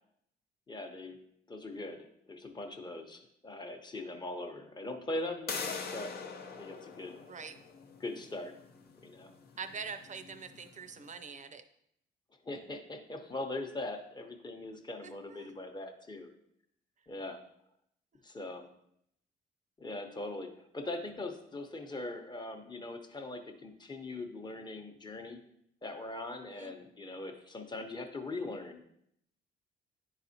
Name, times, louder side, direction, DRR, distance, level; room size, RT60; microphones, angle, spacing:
voice 1, 0.7-1.2 1.5-6.1 6.6-7.2 8.0-8.5 9.0-9.3 12.4-16.3 17.1-17.4 18.2-18.7 19.8-25.4 25.8-28.8, left 2 dB, 20° left, 5 dB, 0.9 m, -41 dB
sound 1, 5.5-11.1, left 5 dB, 50° left, 0.8 m, -44 dB
voice 2, 7.3-7.6 9.6-11.6 15.0-15.5 26.5-26.7, right 5 dB, 40° right, 9 dB, 0.6 m, -44 dB
10.5 x 4.0 x 2.8 m, 0.74 s
cardioid pair, 90°, 20 cm